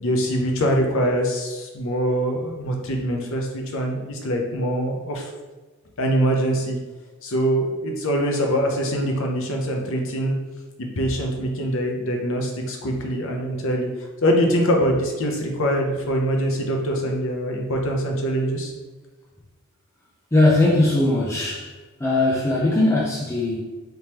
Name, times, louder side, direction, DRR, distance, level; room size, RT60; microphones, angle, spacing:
voice 1, 0.0-5.3 6.0-6.8 7.2-10.3 10.8-13.9 14.2-18.7, equal, 65° left, 2 dB, 0.7 m, -23 dB
voice 2, 20.3-21.7 22.0-23.6, left 2 dB, 15° left, -5 dB, 0.5 m, -19 dB
3.5 x 3.1 x 2.9 m, 1.3 s
head